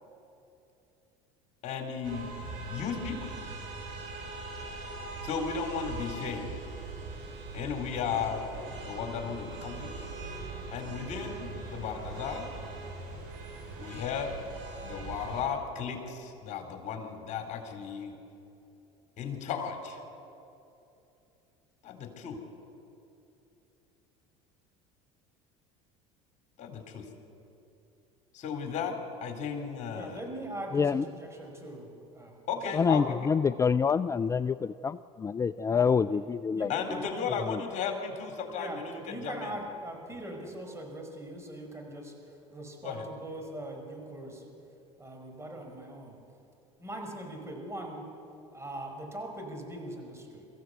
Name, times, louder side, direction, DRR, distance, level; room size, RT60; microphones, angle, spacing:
voice 1, 1.6-2.3 2.6-3.3 5.2-6.5 7.5-8.5 8.8-10.0 10.7-12.5 13.8-14.4 14.8-18.1 19.2-20.0 21.8-22.4 26.6-27.1 28.3-30.2 32.5-33.3 36.7-39.6 42.8-43.1, left 6 dB, 50° left, 4 dB, 4.1 m, -35 dB
sound 1, 2.0-15.4, right 3 dB, 60° right, 7.3 m, -41 dB
voice 2, 29.9-32.3 35.7-35.9 36.5-37.3 38.5-42.1 42.5-44.4 45.0-46.2 46.8-48.1 48.5-50.4, right 1 dB, 15° right, 2 dB, 5.3 m, -41 dB
voice 3, 30.7-31.1 32.7-37.0 37.3-37.6, left 6 dB, 20° left, 15 dB, 0.4 m, -27 dB
23.5 x 15.5 x 8.2 m, 2.8 s
hypercardioid pair, 85°, 16 cm